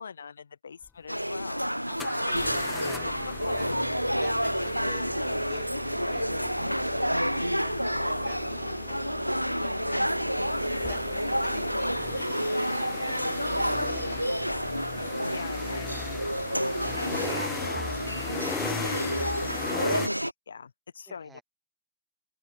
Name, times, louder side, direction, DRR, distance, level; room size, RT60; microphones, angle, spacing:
voice 1, 0.0-1.7 2.7-3.6 9.9-10.1 10.7-11.0 13.2-13.3 13.9-15.0 15.3-16.0 16.8-20.1 20.5-21.4, left 6 dB, 70° left, 2.2 m, -44 dB
sound 1, 0.8-0.9 2.0-20.1, left 6 dB, 20° left, 5.1 m, -39 dB
sound 2, 1.1-20.3, equal, 90° right, 0.3 m, -29 dB
voice 2, 1.6-3.7 4.2-5.8 10.9-13.3 21.1-21.4, right 5 dB, 15° right, 6.1 m, -52 dB
open air
figure-of-eight pair, 90°, 0 cm